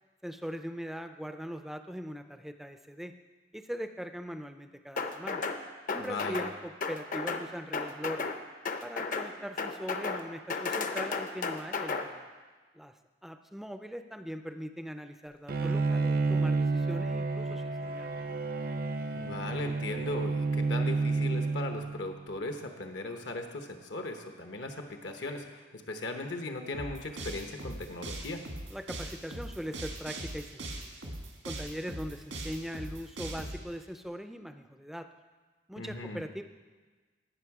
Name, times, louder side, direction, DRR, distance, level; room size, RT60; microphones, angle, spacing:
voice 1, 0.2-3.1 3.5-5.4 5.9-8.3 8.8-12.3 12.7-12.9 13.2-18.1 28.7-30.9 31.4-35.1 35.7-36.4, equal, ahead, 8 dB, 0.4 m, -40 dB
sound 1, 5.0-5.6 5.9-6.5 6.8-7.4 7.7-8.4 8.6-9.3 9.6-10.2 10.5-12.0, left 4 dB, 45° left, 0.6 m, -33 dB
voice 2, 6.0-6.4 19.1-28.4 35.8-36.2, left 2 dB, 70° left, 5 dB, 0.9 m, -38 dB
Bowed string instrument, 15.5-22.2, right 3 dB, 50° right, 0.6 m, -30 dB
sound 2, 26.7-33.6, right 1 dB, 85° right, 1.8 m, -40 dB
17.0 x 6.2 x 4.8 m, 1.4 s
head